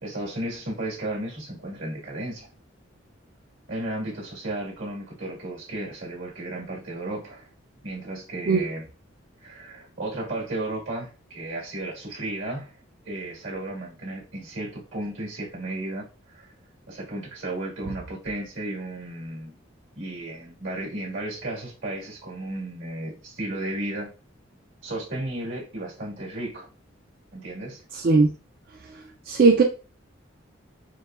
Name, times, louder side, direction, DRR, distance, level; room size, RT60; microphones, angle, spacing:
voice 1, 0.0-2.5 3.7-7.5 7.8-8.9 9.4-12.8 13.1-16.5 16.9-19.5 20.0-24.1 24.8-26.7 27.3-27.8, right 1 dB, 75° right, -3 dB, 1.8 m, -34 dB
voice 2, 27.9-28.3 29.3-29.6, right 4 dB, 45° right, 3 dB, 0.3 m, -18 dB
4.6 x 3.0 x 2.4 m, 0.35 s
head